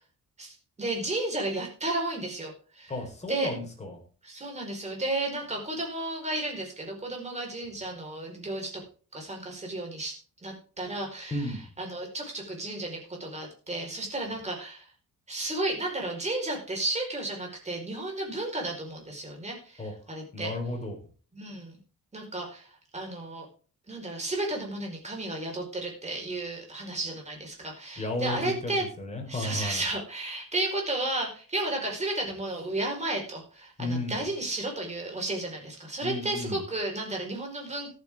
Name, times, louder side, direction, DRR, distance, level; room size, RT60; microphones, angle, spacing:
voice 1, 0.4-2.9 3.3-3.5 4.2-8.8 9.1-10.2 10.4-14.9 15.3-20.5 21.3-21.8 22.1-22.7 22.9-23.4 23.9-28.8 29.3-37.9, right 2 dB, 20° right, 1 dB, 4.8 m, -33 dB
voice 2, 2.9-4.0 11.3-11.6 19.8-19.9 20.3-20.9 28.0-29.8 33.8-34.2 36.0-36.6, left 1 dB, 20° left, 1 dB, 4.6 m, -33 dB
14.5 x 12.0 x 3.7 m, 0.39 s
wide cardioid pair, 180°, 34 cm